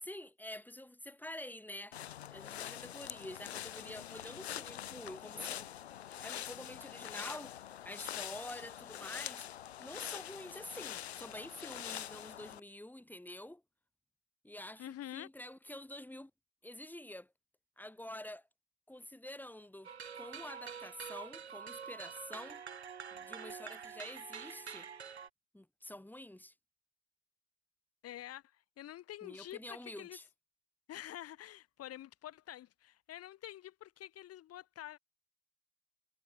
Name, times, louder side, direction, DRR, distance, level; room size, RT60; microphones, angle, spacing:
voice 1, 0.0-2.0 2.3-5.7 6.2-9.5 9.8-13.6 14.4-16.3 16.6-17.3 17.8-18.5 18.9-22.6 23.1-24.9 25.5-26.5 29.2-30.2, left 1 dB, 5° left, 3.0 m, -48 dB
sound 1, 1.9-12.6, left 11 dB, 80° left, 1.0 m, -45 dB
voice 2, 14.8-15.3 28.0-30.2 30.9-35.0, left 13 dB, 50° left, 3.5 m, -48 dB
sound 2, 19.8-25.3, right 7 dB, 90° right, 1.0 m, -46 dB
figure-of-eight pair, 60°, 31 cm